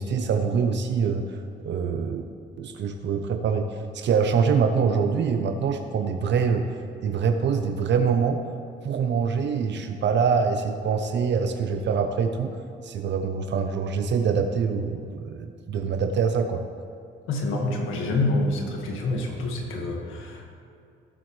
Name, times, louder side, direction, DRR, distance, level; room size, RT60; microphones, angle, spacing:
voice 1, 0.0-2.2 2.6-6.7 7.0-8.4 8.8-12.5 12.8-16.6, right 6 dB, 65° right, 5 dB, 0.8 m, -24 dB
voice 2, 17.3-20.5, left 2 dB, 85° left, 0 dB, 1.8 m, -27 dB
17.0 x 7.6 x 3.3 m, 2.6 s
cardioid pair, 90°, 20 cm